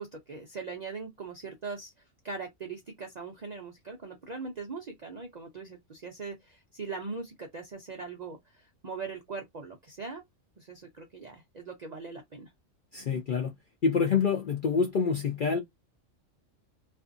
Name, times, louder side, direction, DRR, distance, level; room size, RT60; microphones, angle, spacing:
voice 1, 0.0-1.9 2.2-10.2 10.6-12.5, right 4 dB, 55° right, 0.4 m, -40 dB
voice 2, 12.9-13.5 13.8-15.6, left 5 dB, 60° left, 0.5 m, -26 dB
2.5 x 2.4 x 2.5 m
omnidirectional pair, 1.4 m